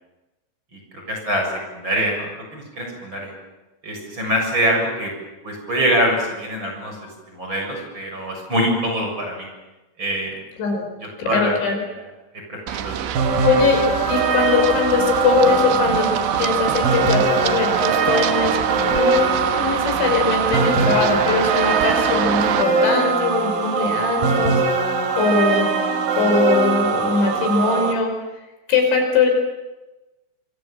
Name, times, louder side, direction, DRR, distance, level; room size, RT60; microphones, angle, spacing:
voice 1, 0.7-3.3 3.8-5.1 5.4-7.0 7.3-9.5 10.0-10.3 11.0-11.6 12.5-13.1, equal, 25° right, 1 dB, 7.4 m, -24 dB
voice 2, 11.2-11.8 13.4-13.8 14.1-16.1 16.4-25.9 26.2-28.1 28.7-29.3, left 5 dB, 70° left, 4 dB, 7.4 m, -21 dB
Run, 12.7-22.6, right 11 dB, 75° right, 3.4 m, -26 dB
sound 1, 13.2-27.9, right 4 dB, 50° right, 4.0 m, -21 dB
27.0 x 26.0 x 7.7 m, 1.1 s
omnidirectional pair, 5.5 m